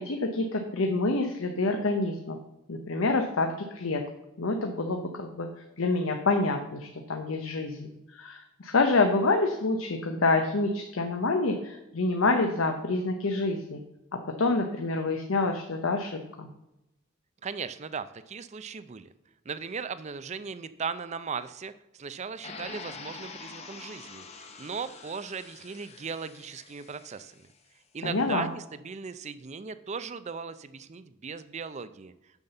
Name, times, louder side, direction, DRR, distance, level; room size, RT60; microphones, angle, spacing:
voice 1, 0.0-2.4 2.7-4.0 4.4-5.5 5.8-13.8 14.1-16.5 28.0-28.5, left 3 dB, 80° left, 4 dB, 0.8 m, -27 dB
voice 2, 17.4-19.1 19.5-27.3 27.9-32.1, right 5 dB, 35° right, 14 dB, 0.5 m, -38 dB
sound 1, 22.4-27.4, left 4 dB, 30° left, 0.9 m, -45 dB
7.1 x 5.7 x 6.7 m, 0.91 s
head